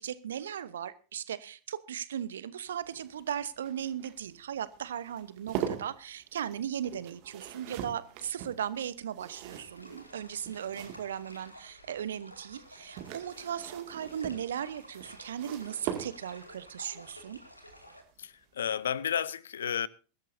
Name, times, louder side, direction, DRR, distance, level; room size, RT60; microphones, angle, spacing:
voice 1, 0.0-17.4, right 9 dB, 65° right, 0.9 m, -37 dB
sound 1, 2.7-11.5 12.6-16.6 18.2-18.5 18.8-18.9, right 10 dB, 45° right, 2.2 m, -42 dB
sound 2, 9.5-18.0, equal, 85° left, 2.3 m, -52 dB
voice 2, 18.2-19.9, left 8 dB, 65° left, 0.6 m, -32 dB
22.5 x 12.5 x 2.7 m
figure-of-eight pair, 90°, 0 cm